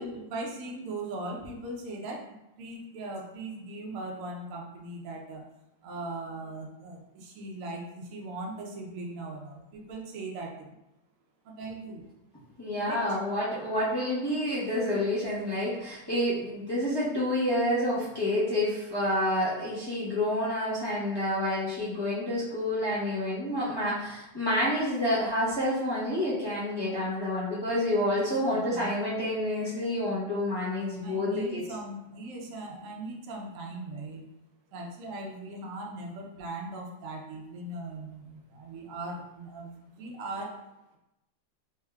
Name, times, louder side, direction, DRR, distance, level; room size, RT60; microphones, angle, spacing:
voice 1, 0.0-5.4 5.8-10.8 11.4-12.0 12.8-13.0 28.1-28.9 31.0-34.3 34.7-40.6, right 2 dB, 65° right, -1 dB, 0.8 m, -39 dB
voice 2, 12.6-31.6, left 1 dB, 35° left, -10 dB, 0.4 m, -28 dB
3.5 x 3.4 x 2.2 m, 0.90 s
omnidirectional pair, 2.1 m